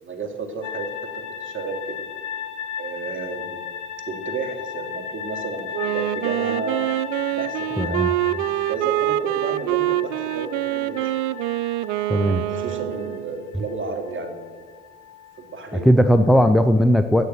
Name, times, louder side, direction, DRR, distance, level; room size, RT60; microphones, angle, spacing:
voice 1, 0.0-2.0 2.8-3.7 4.0-6.8 7.3-11.1 12.3-14.6 15.4-15.9, right 3 dB, 35° right, 3 dB, 2.7 m, -32 dB
sound 1, 0.6-16.4, left 8 dB, 55° left, 2.1 m, -36 dB
Wind instrument woodwind instrument, 5.7-13.5, right 16 dB, 70° right, 0.5 m, -25 dB
voice 2, 7.8-8.1 12.1-12.4 15.8-17.3, equal, ahead, 8 dB, 0.6 m, -17 dB
17.0 x 6.7 x 6.5 m, 1.5 s
hypercardioid pair, 60°, 36 cm